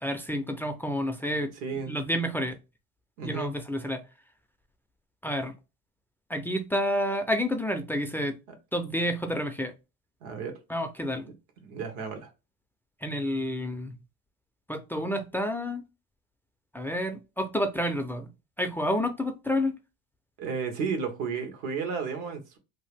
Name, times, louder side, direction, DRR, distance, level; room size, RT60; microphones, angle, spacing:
voice 1, 0.0-2.6 3.2-4.0 5.2-5.5 6.3-8.3 8.7-9.7 10.7-11.2 13.0-14.0 14.7-15.8 16.7-18.3 18.6-19.8, equal, 5° left, 0.4 m, -29 dB
voice 2, 1.6-1.9 3.2-3.5 10.2-10.6 11.2-11.3 11.6-12.3 20.4-22.6, right 5 dB, 75° right, 1.2 m, -33 dB
2.8 x 2.5 x 3.3 m
supercardioid pair, 95°, 31 cm